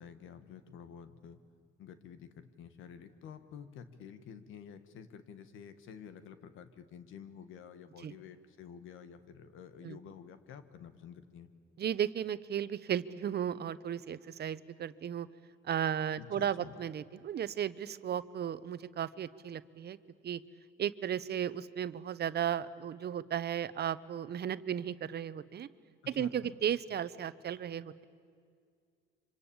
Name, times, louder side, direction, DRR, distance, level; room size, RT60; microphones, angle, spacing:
voice 1, 0.0-1.4 1.8-11.5 16.2-16.7 26.1-26.5, left 7 dB, 85° left, 11 dB, 1.7 m, -50 dB
voice 2, 11.8-15.3 15.6-20.0 20.2-20.4 20.8-25.7 26.1-28.0, right 9 dB, 55° right, 15 dB, 0.9 m, -35 dB
26.0 x 25.5 x 8.9 m, 2.2 s
cardioid pair, 90°, 20 cm